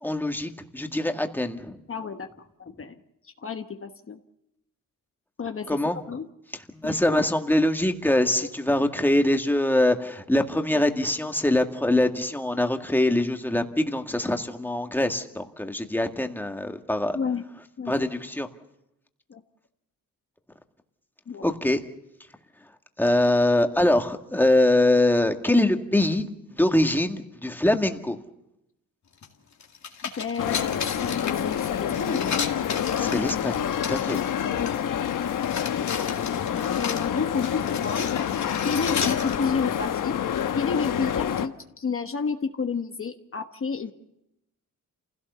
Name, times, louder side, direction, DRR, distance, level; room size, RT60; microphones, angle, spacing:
voice 1, 0.0-1.8 5.7-6.0 6.7-17.2 17.9-18.5 21.4-21.8 23.0-28.2 33.0-34.2, left 1 dB, 5° left, 5 dB, 1.9 m, -23 dB
voice 2, 1.9-2.3 2.6-3.0 3.2-4.2 5.4-5.8 6.1-6.3 6.8-7.2 8.7-8.8 17.1-17.4 17.8-17.9 19.3-19.4 21.3-21.4 30.2-32.2 34.5-35.4 36.8-38.1 38.6-40.2 40.5-43.9, left 5 dB, 40° left, 6 dB, 1.2 m, -31 dB
sound 1, 29.2-29.3 29.6-34.8 35.1-39.4, left 6 dB, 60° left, 2.3 m, -34 dB
sound 2, 30.4-41.5, left 9 dB, 75° left, 1.1 m, -27 dB
27.5 x 16.5 x 6.9 m, 0.85 s
cardioid pair, 85°, 32 cm